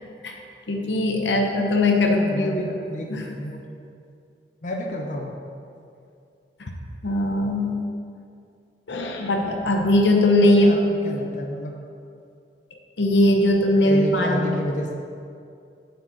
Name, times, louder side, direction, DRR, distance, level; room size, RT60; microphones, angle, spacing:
voice 1, 0.7-2.7 3.1-3.3 6.6-6.7 7.0-7.9 8.9-10.8 13.0-14.5, left 1 dB, 80° left, 2 dB, 0.8 m, -20 dB
voice 2, 2.0-3.6 4.6-5.3 10.4-10.8 11.0-11.7 13.8-15.0, equal, 45° left, 0 dB, 0.7 m, -30 dB
7.5 x 4.2 x 6.1 m, 2.4 s
head